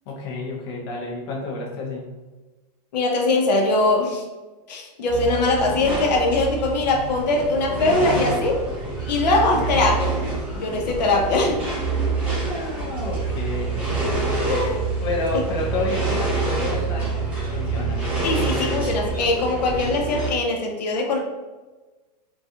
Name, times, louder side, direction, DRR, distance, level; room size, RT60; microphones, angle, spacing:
voice 1, 0.1-2.1 12.4-13.8 15.0-18.0, left 2 dB, 35° left, -2 dB, 0.4 m, -30 dB
voice 2, 2.9-4.2 4.7-8.6 9.1-10.2 10.5-11.6 14.4-14.8 18.2-21.2, left 2 dB, 85° left, 1 dB, 0.6 m, -21 dB
sound 1, 5.1-20.3, right 3 dB, 10° right, 0.7 m, -26 dB
2.4 x 2.3 x 2.6 m, 1.2 s
supercardioid pair, 175°, 21 cm